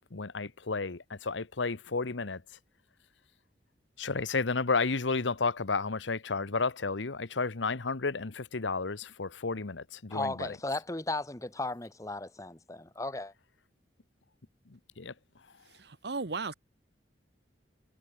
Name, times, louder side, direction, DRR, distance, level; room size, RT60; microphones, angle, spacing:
voice 1, 0.1-2.4 4.0-10.5 14.7-15.1, left 4 dB, 90° left, 1.1 m, -32 dB
voice 2, 10.1-13.3, left 2 dB, 20° left, 1.2 m, -35 dB
voice 3, 15.8-16.5, right 4 dB, 60° right, 1.0 m, -35 dB
head